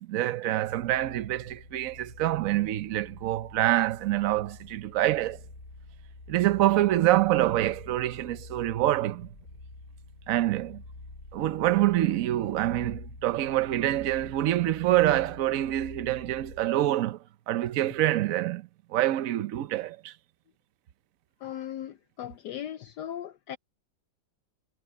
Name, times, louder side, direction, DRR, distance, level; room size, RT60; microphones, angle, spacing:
voice 1, 0.0-5.4 6.3-9.3 10.3-10.8 11.3-17.2 17.5-20.1, right 14 dB, 65° right, 0.9 m, -26 dB
sound 1, 0.6-16.8, left 2 dB, 50° left, 4.4 m, -47 dB
voice 2, 21.4-23.6, left 10 dB, 70° left, 1.2 m, -38 dB
omnidirectional pair, 2.0 m